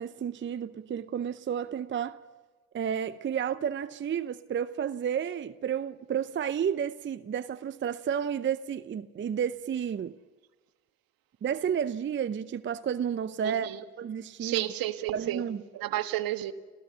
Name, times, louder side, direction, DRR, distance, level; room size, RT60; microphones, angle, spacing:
voice 1, 0.0-2.2 2.7-10.1 11.4-13.7 14.0-14.7 15.1-15.6, right 8 dB, 30° right, 0.7 m, -31 dB
voice 2, 13.4-13.8 14.4-15.4 15.7-16.5, right 14 dB, 55° right, 1.4 m, -31 dB
29.5 x 15.0 x 7.0 m
hypercardioid pair, 65°, 41 cm